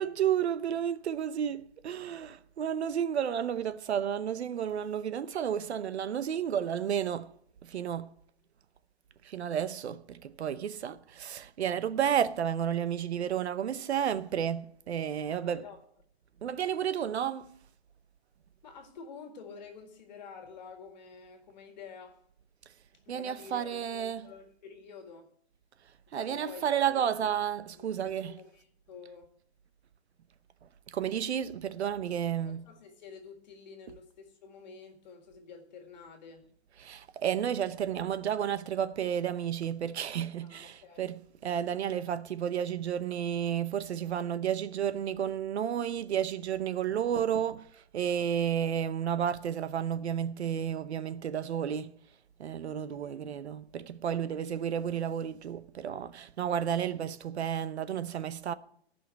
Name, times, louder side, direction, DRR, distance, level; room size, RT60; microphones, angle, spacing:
voice 1, 0.0-7.3 7.6-8.1 9.2-15.6 16.4-17.5 23.1-24.3 26.1-28.4 30.9-32.6 36.8-51.9 52.4-58.5, right 9 dB, 80° right, 0.9 m, -32 dB
voice 2, 15.2-15.8 18.6-22.2 23.1-25.3 26.1-26.6 26.9-27.1 27.7-29.3 32.4-36.5 40.4-41.1 52.9-53.2 54.1-54.6, left 5 dB, 40° left, 1.9 m, -49 dB
15.0 x 5.7 x 7.7 m
hypercardioid pair, 175°, 33 cm